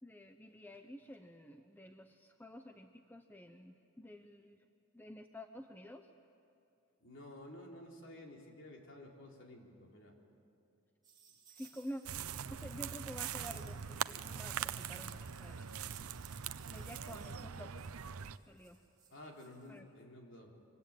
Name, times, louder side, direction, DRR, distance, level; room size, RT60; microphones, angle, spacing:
voice 1, 0.0-4.6 4.9-6.1 11.5-12.0 12.5-15.8 16.7-17.9 18.5-18.8 19.7-19.9, equal, 10° left, 6 dB, 0.7 m, -50 dB
voice 2, 7.0-10.2 19.1-20.5, left 1 dB, 55° left, 0 dB, 3.8 m, -52 dB
sound 1, 11.0-19.8, right 7 dB, 20° right, 3.9 m, -63 dB
sound 2, 12.1-18.4, right 8 dB, 80° right, 0.7 m, -42 dB
25.0 x 24.5 x 8.9 m, 2.7 s
head